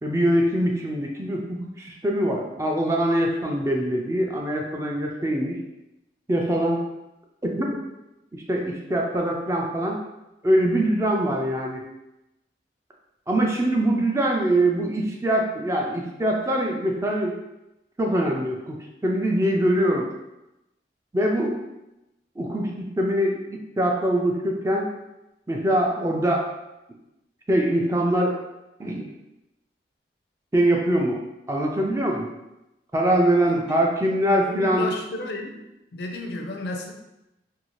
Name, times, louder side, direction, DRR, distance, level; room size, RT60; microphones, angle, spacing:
voice 1, 0.0-5.6 6.3-6.8 7.4-7.7 8.5-10.0 10.4-11.8 13.3-17.3 18.0-18.8 19.0-20.1 21.1-21.6 22.4-24.9 25.5-26.5 27.5-28.3 28.8-29.1 30.5-31.2 31.5-32.3 32.9-34.9, right 1 dB, 15° right, 0 dB, 0.3 m, -23 dB
voice 2, 33.4-33.9 34.4-35.6 35.9-36.9, left 1 dB, 70° left, 3 dB, 0.4 m, -33 dB
2.7 x 2.3 x 3.0 m, 0.93 s
head